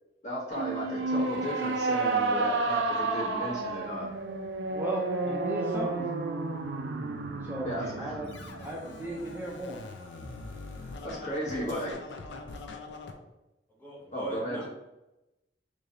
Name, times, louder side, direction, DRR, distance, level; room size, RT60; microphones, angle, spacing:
voice 1, 0.2-4.1 7.6-8.2 11.0-11.9 14.1-14.7, equal, 45° left, -4 dB, 1.1 m, -35 dB
sound 1, 0.5-9.9, right 3 dB, 90° right, 0.4 m, -31 dB
voice 2, 4.7-6.1 7.4-8.3 8.6-9.8, equal, 10° right, -3 dB, 0.4 m, -36 dB
Scratching (performance technique), 8.3-13.1, left 3 dB, 80° left, 0.5 m, -43 dB
voice 3, 11.1-11.9 13.8-14.7, equal, 10° left, -6 dB, 1.3 m, -40 dB
3.1 x 2.6 x 3.8 m, 0.96 s
head